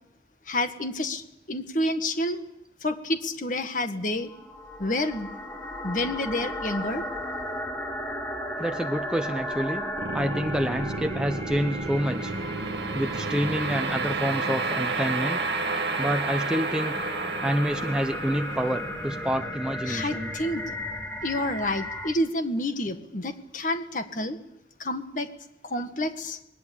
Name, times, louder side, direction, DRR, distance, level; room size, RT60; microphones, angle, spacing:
voice 1, 0.5-2.4 2.8-4.3 4.8-5.3 5.8-7.1 19.9-20.7 21.2-24.4 24.8-25.3 25.6-26.4, left 1 dB, 45° left, 8 dB, 1.8 m, -29 dB
sound 1, 4.2-22.1, equal, 10° left, 3.3 m, -35 dB
voice 2, 8.6-9.8 10.1-12.3 12.9-15.4 16.0-17.0 17.4-20.3, equal, 5° right, 5 dB, 0.8 m, -28 dB
sound 2, 10.0-21.2, right 3 dB, 75° right, 2.0 m, -32 dB
21.0 x 19.5 x 8.7 m, 0.85 s
head